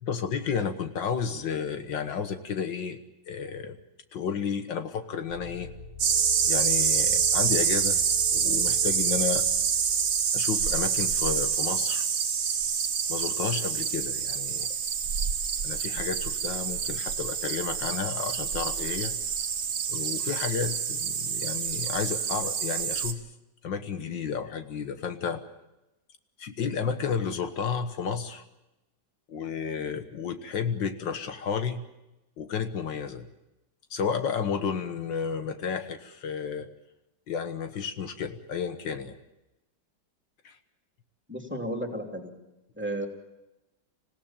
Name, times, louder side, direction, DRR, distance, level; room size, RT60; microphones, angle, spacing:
voice 1, 0.0-3.0 3.3-3.8 4.1-5.7 6.4-8.0 8.3-9.4 10.3-12.1 13.1-14.7 15.6-19.2 19.9-23.3 23.6-25.4 26.4-28.4 29.3-31.8 32.4-33.3 33.9-36.7 37.3-39.2 40.4-40.6, left 6 dB, 75° left, 8 dB, 2.0 m, -32 dB
sound 1, 5.3-10.3, equal, 60° left, 7.4 m, -44 dB
sound 2, 6.0-23.1, right 7 dB, 60° right, 1.8 m, -27 dB
voice 2, 41.3-42.3 42.7-43.1, right 1 dB, 5° right, 2 dB, 2.9 m, -33 dB
26.5 x 17.0 x 8.9 m, 0.97 s
omnidirectional pair, 2.0 m